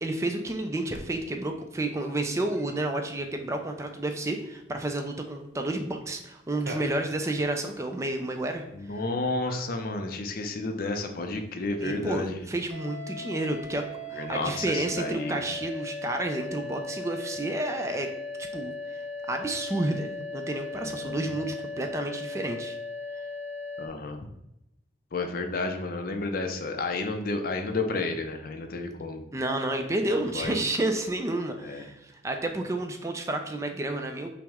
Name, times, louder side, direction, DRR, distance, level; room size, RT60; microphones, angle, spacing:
voice 1, 0.0-8.6 11.8-13.8 14.1-18.1 18.5-19.0 19.3-22.8 29.3-34.3, right 2 dB, 15° right, 5 dB, 0.3 m, -30 dB
Cat, 0.9-14.6, right 1 dB, 85° right, 0.7 m, -51 dB
voice 2, 8.7-12.4 14.1-15.4 20.8-21.2 23.8-24.3 25.1-29.2 30.1-30.7 31.6-31.9, left 3 dB, 55° left, 5 dB, 0.5 m, -31 dB
sound 1, 12.7-23.9, left 2 dB, 20° left, 1.0 m, -38 dB
5.7 x 2.1 x 3.5 m, 0.87 s
head